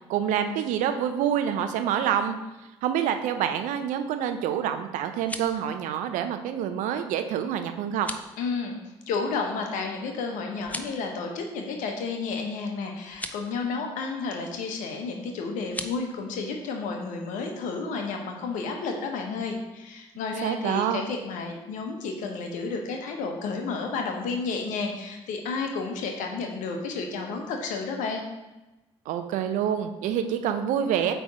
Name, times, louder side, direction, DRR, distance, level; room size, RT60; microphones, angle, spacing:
voice 1, 0.1-2.4 2.8-8.1 20.4-21.0 29.1-31.1, right 9 dB, 65° right, 8 dB, 0.6 m, -27 dB
sound 1, 5.0-5.6 7.9-8.3 10.6-11.0 13.1-13.4 15.6-16.0, left 1 dB, 10° left, 0.7 m, -37 dB
voice 2, 8.4-28.2, left 4 dB, 70° left, 3 dB, 1.1 m, -31 dB
8.3 x 3.4 x 4.9 m, 1.0 s
hypercardioid pair, 45°, 14 cm